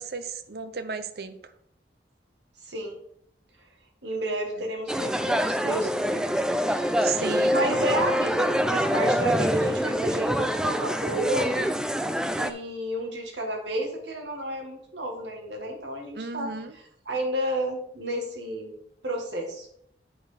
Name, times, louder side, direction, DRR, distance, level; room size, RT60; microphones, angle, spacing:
voice 1, 0.0-1.3 7.0-7.5 16.1-16.7, right 5 dB, 60° right, 11 dB, 0.6 m, -33 dB
voice 2, 2.6-3.0 4.0-6.2 6.7-7.2 7.5-11.7 12.4-18.7 19.0-19.7, right 1 dB, 80° right, 2 dB, 1.9 m, -31 dB
sound 1, 4.9-12.5, equal, 5° right, 0.3 m, -25 dB
8.6 x 4.3 x 5.1 m, 0.68 s
head